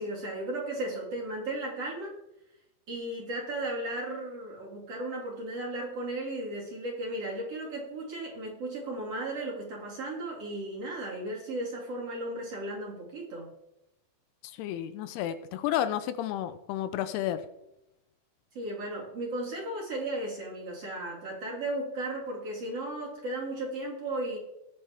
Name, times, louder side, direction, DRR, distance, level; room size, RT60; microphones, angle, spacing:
voice 1, 0.0-2.1 2.9-13.5 18.5-24.4, right 1 dB, 40° right, -2 dB, 3.0 m, -35 dB
voice 2, 14.6-17.4, left 11 dB, 80° left, 12 dB, 2.6 m, -31 dB
20.0 x 6.9 x 3.5 m, 0.86 s
omnidirectional pair, 4.7 m